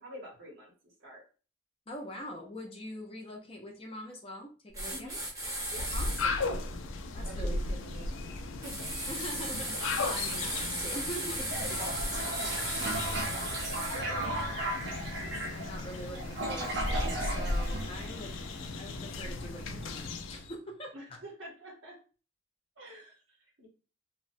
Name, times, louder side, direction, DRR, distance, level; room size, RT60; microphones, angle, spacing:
voice 1, 0.0-1.2 4.9-5.2 5.7-5.9 7.2-8.1 8.6-9.0 11.5-12.0 12.4-13.5 13.9-14.6 20.9-22.0 22.8-23.7, right 1 dB, 75° right, -1 dB, 1.0 m, -47 dB
voice 2, 1.9-5.1 5.9-6.6 7.1-7.8 9.1-11.5 13.8-18.3 18.8-20.9, equal, 30° left, 1 dB, 0.5 m, -43 dB
sound 1, 4.7-6.3 8.6-14.0, right 1 dB, 15° right, 0.7 m, -36 dB
sound 2, 5.6-20.5, left 2 dB, 80° left, 0.4 m, -36 dB
Toilet flush, 11.6-18.6, right 1 dB, 60° right, 0.7 m, -36 dB
2.8 x 2.1 x 2.5 m, 0.36 s
head